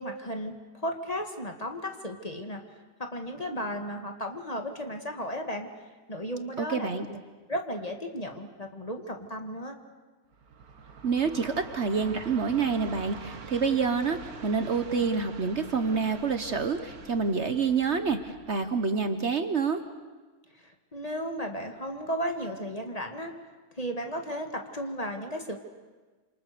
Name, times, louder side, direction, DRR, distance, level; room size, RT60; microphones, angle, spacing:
voice 1, 0.0-2.6 3.0-5.7 6.1-7.2 7.5-9.8 20.6-23.3 23.8-25.6, equal, 25° left, 4 dB, 1.9 m, -34 dB
voice 2, 6.6-7.1 11.0-19.8, right 5 dB, 50° right, 9 dB, 1.3 m, -27 dB
Train, 10.3-19.5, right 4 dB, 75° right, 2.0 m, -45 dB
27.5 x 27.0 x 6.8 m, 1.3 s
omnidirectional pair, 1.6 m